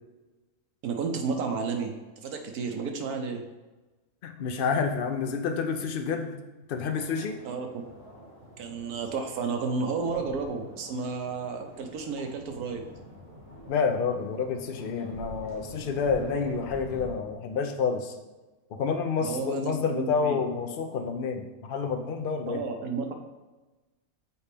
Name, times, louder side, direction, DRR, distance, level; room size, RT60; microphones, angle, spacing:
voice 1, 0.8-3.4 7.4-7.8 8.6-12.8 19.2-20.4 22.5-23.1, right 4 dB, 85° right, 4 dB, 1.3 m, -32 dB
voice 2, 4.2-6.3 6.7-7.4 13.7-18.2 18.7-22.6, left 5 dB, 60° left, 5 dB, 0.6 m, -29 dB
sound 1, 6.9-17.1, equal, 35° right, 1.2 m, -46 dB
7.0 x 4.2 x 3.4 m, 1.2 s
omnidirectional pair, 1.5 m